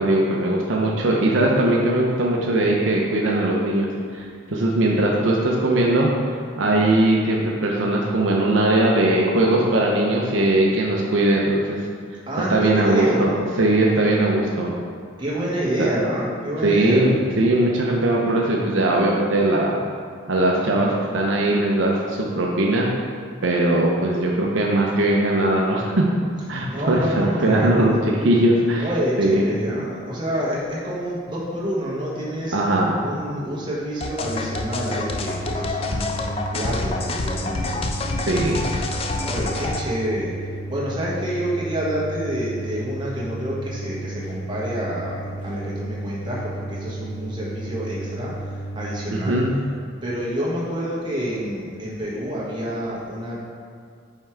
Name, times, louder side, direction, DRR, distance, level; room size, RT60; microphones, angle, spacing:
voice 1, 0.0-11.8 12.5-13.3 13.6-14.8 16.6-19.8 20.3-22.9 23.4-26.1 26.5-28.0 28.2-28.9 29.2-29.4 32.5-33.0 38.2-38.6 49.1-49.5, right 1 dB, 65° right, -2 dB, 0.7 m, -20 dB
voice 2, 12.3-13.5 15.2-17.1 26.7-28.0 28.8-32.6 33.0-37.7 39.2-49.4 50.0-53.4, equal, 25° right, -6 dB, 1.2 m, -28 dB
sound 1, 34.0-39.8, left 2 dB, 30° left, 0.4 m, -27 dB
sound 2, 34.2-49.5, right 1 dB, 90° left, 1.4 m, -33 dB
5.7 x 4.5 x 4.5 m, 2.1 s
head